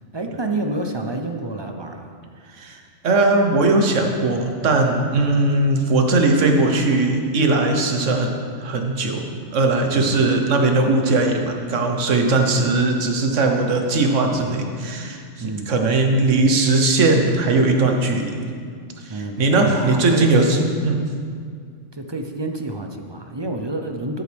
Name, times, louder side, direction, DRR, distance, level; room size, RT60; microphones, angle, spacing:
voice 1, 0.1-2.1 9.9-10.2 14.4-14.6 15.4-15.8 19.1-20.7 21.9-24.2, right 2 dB, 40° right, 4 dB, 0.4 m, -29 dB
voice 2, 3.0-8.3 8.6-18.4 19.0-20.6 20.8-21.0, right 2 dB, 85° right, 3 dB, 1.3 m, -19 dB
13.5 x 8.2 x 3.4 m, 2.1 s
omnidirectional pair, 1.2 m